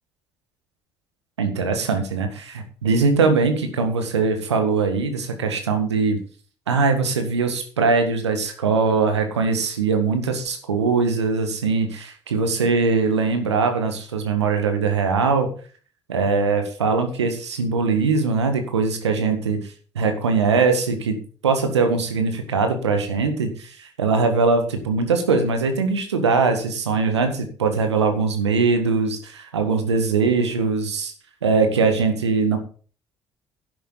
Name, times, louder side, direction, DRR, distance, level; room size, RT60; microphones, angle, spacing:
voice 1, 1.4-6.2 6.7-15.5 16.1-19.6 20.0-21.2 21.4-31.1 31.4-32.6, right 4 dB, 85° right, 6 dB, 1.7 m, -21 dB
11.5 x 10.5 x 3.9 m, 0.41 s
figure-of-eight pair, 50°, 14 cm